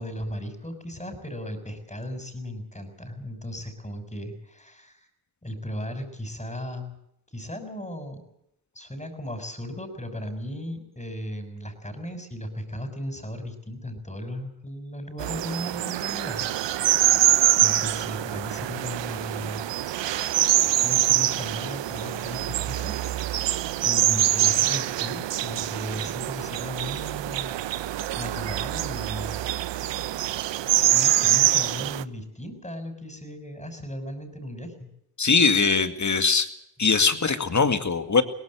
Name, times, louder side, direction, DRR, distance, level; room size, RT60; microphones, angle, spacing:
voice 1, 0.0-5.1 5.4-6.9 7.3-8.2 8.7-19.7 20.8-23.0 23.4-27.6 28.2-29.4 30.9-34.9, equal, 15° left, 8 dB, 6.3 m, -36 dB
sound 1, 15.2-32.0, right 13 dB, 80° right, 0.8 m, -25 dB
voice 2, 35.2-36.5 36.8-38.2, left 4 dB, 40° left, 8 dB, 2.3 m, -21 dB
22.5 x 18.0 x 7.7 m, 0.78 s
cardioid pair, 55°, 43 cm